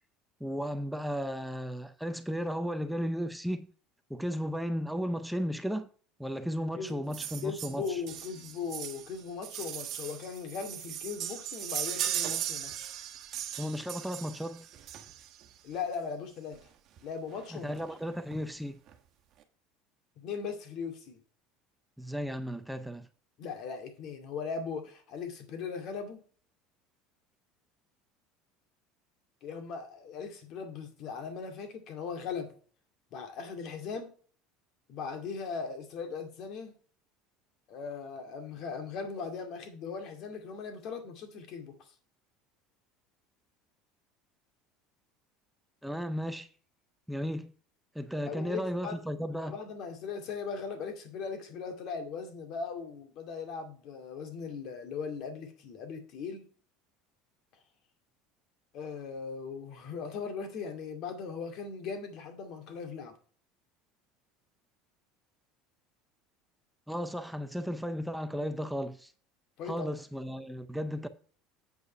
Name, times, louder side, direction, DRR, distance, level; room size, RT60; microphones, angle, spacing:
voice 1, 0.4-3.7 4.1-5.9 6.2-8.0 13.6-14.7 17.5-18.8 22.0-23.1 45.8-46.5 47.1-47.5 47.9-49.5 66.9-69.1 69.7-71.1, equal, ahead, 0.6 m, -34 dB
sound 1, 7.1-15.5 16.5-16.6 17.0-17.1 17.3-17.4 17.8-18.4 18.9-19.0, right 10 dB, 45° right, 1.4 m, -38 dB
voice 2, 7.4-12.9 15.6-16.6 17.0-17.7 20.2-21.2 23.4-26.2 29.4-32.6 33.1-34.1 34.9-36.7 37.7-41.7 48.3-49.0 49.5-56.5 58.7-63.1 69.6-69.9, left 5 dB, 50° left, 2.1 m, -39 dB
8.1 x 5.4 x 5.5 m
cardioid pair, 145°, 0 cm